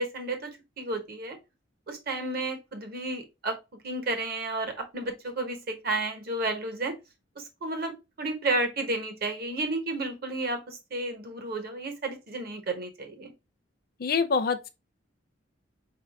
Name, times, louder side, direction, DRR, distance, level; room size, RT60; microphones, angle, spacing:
voice 1, 0.0-1.4 1.9-3.6 3.8-6.9 7.4-13.3, right 2 dB, 50° right, 1.1 m, -32 dB
voice 2, 14.0-14.7, left 5 dB, 50° left, 0.5 m, -25 dB
4.8 x 2.6 x 3.4 m
head